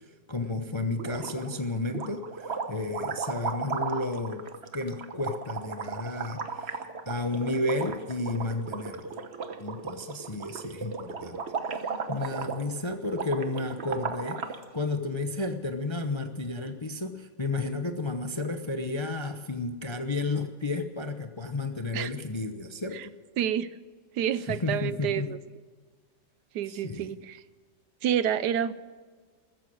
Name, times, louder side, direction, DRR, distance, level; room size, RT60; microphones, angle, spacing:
voice 1, 0.3-4.4 4.7-9.1 9.6-11.4 11.7-23.1 24.5-25.3 26.7-27.1, left 2 dB, 30° left, 7 dB, 0.5 m, -32 dB
sound 1, 1.0-1.6 1.9-14.6, right 5 dB, 45° right, 1.2 m, -36 dB
voice 2, 23.4-23.7 24.1-25.4 26.5-27.4 28.0-28.7, right 9 dB, 75° right, 15 dB, 1.2 m, -28 dB
15.0 x 14.0 x 6.4 m, 1.5 s
omnidirectional pair, 1.9 m